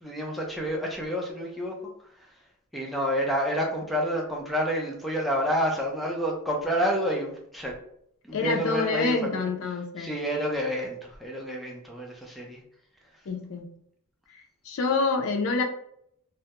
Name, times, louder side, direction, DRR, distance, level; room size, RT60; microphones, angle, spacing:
voice 1, 0.0-1.8 2.7-7.8 8.3-9.4 10.0-12.6, equal, ahead, -2 dB, 0.4 m, -29 dB
voice 2, 8.3-10.1 13.3-13.7 14.6-15.6, left 4 dB, 65° left, 3 dB, 0.4 m, -27 dB
2.2 x 2.0 x 2.8 m, 0.70 s
head